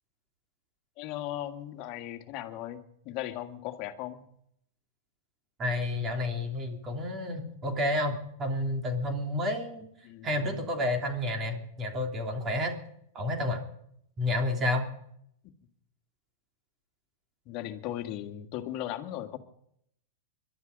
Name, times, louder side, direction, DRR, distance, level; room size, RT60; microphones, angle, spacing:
voice 1, 1.0-4.2 10.0-10.7 15.4-15.5 17.5-19.4, left 13 dB, 45° left, 6 dB, 1.8 m, -37 dB
voice 2, 5.6-9.9 10.2-12.7 13.1-13.6 14.2-14.9, left 1 dB, 25° right, 3 dB, 3.2 m, -30 dB
22.0 x 12.0 x 5.2 m, 0.72 s
hypercardioid pair, 115°, 0 cm